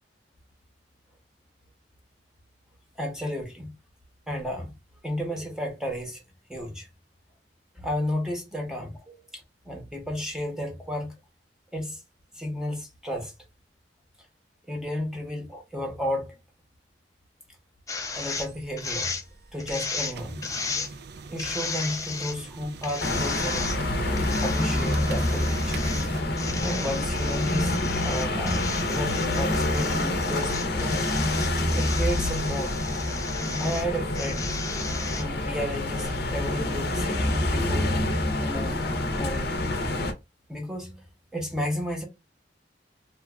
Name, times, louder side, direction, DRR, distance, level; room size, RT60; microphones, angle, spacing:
voice 1, 3.0-3.7 4.3-4.7 5.0-6.2 6.5-6.9 7.8-11.1 11.7-12.0 12.3-13.3 14.7-16.3 18.1-19.1 19.5-20.5 21.3-23.8 24.1-26.2 26.6-31.1 31.6-32.9 33.6-34.5 35.2-37.9 38.4-38.8 39.2-39.6 40.5-41.0 41.3-42.1, equal, 5° right, 0.8 m, -33 dB
sound 1, 17.9-18.5 18.8-19.2 19.6-20.1 20.4-20.9 21.4-22.4 22.8-23.8 24.2-26.1 26.4-33.9 34.1-35.2, left 4 dB, 20° left, 0.5 m, -35 dB
sound 2, 18.1-26.2, right 4 dB, 65° right, 0.4 m, -43 dB
sound 3, 23.0-40.1, left 1 dB, 65° left, 0.6 m, -27 dB
3.0 x 2.2 x 2.3 m
head